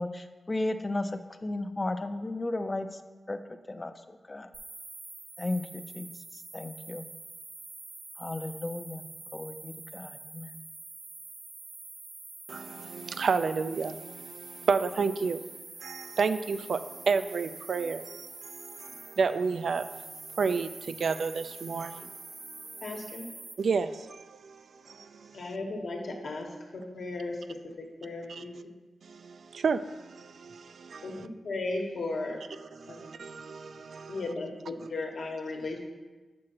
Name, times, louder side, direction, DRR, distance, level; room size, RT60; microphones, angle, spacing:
voice 1, 0.0-3.0 3.3-3.4 3.7-3.9 4.3-4.5 5.4-7.0 8.2-9.1 9.3-10.6, left 2 dB, 30° left, 9 dB, 0.4 m, -34 dB
sound 1, 4.5-23.5, right 3 dB, 50° right, 0.8 m, -46 dB
voice 2, 12.5-15.4 15.8-20.0 20.3-22.1 23.6-25.4 28.3-28.4 29.0-31.3 32.7-34.2, right 5 dB, 75° right, 11 dB, 0.3 m, -31 dB
voice 3, 22.8-23.2 25.3-28.7 31.0-31.2 31.4-32.4 32.9-33.0 34.1-35.9, left 2 dB, 70° left, 1 dB, 1.1 m, -36 dB
7.4 x 6.2 x 2.9 m, 1.2 s
cardioid pair, 80°, 0 cm